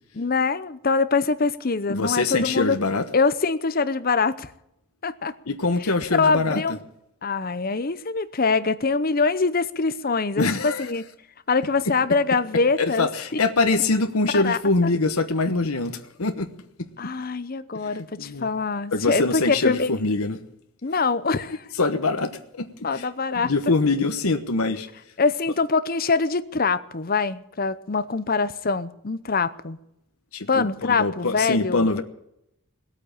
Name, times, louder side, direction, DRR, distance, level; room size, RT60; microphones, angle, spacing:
voice 1, 0.2-2.8 3.1-4.5 5.0-5.3 5.8-5.9 6.2-6.8 7.2-11.0 11.5-13.1 14.3-14.9 17.0-19.9 20.8-21.6 22.8-23.5 25.2-29.8 30.5-32.0, left 4 dB, 40° left, 0.7 m, -24 dB
voice 2, 1.9-3.0 5.5-6.6 10.4-10.9 12.8-16.5 16.8-16.9 17.8-18.5 18.9-20.4 21.8-23.0 23.3-24.9 30.3-32.0, left 3 dB, 80° left, 1.1 m, -24 dB
18.5 x 8.7 x 8.7 m
head